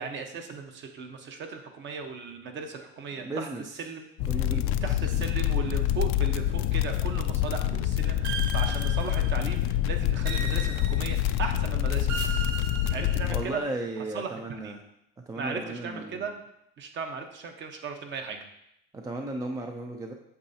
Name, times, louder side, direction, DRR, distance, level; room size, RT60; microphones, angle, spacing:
voice 1, 0.0-3.5 3.7-12.4 12.9-13.6 14.0-14.7 15.3-16.3 16.8-18.4, right 5 dB, 40° right, 5 dB, 1.1 m, -37 dB
voice 2, 3.2-3.6 4.3-5.0 13.3-14.8 15.3-16.3 18.9-20.1, right 2 dB, 10° right, 3 dB, 0.4 m, -35 dB
sound 1, 4.2-13.4, left 12 dB, 50° left, 0.4 m, -26 dB
sound 2, 8.2-9.6 10.2-11.4 12.1-13.6, right 6 dB, 55° right, 1.5 m, -37 dB
8.6 x 6.9 x 2.8 m, 0.80 s
supercardioid pair, 130°, 30 cm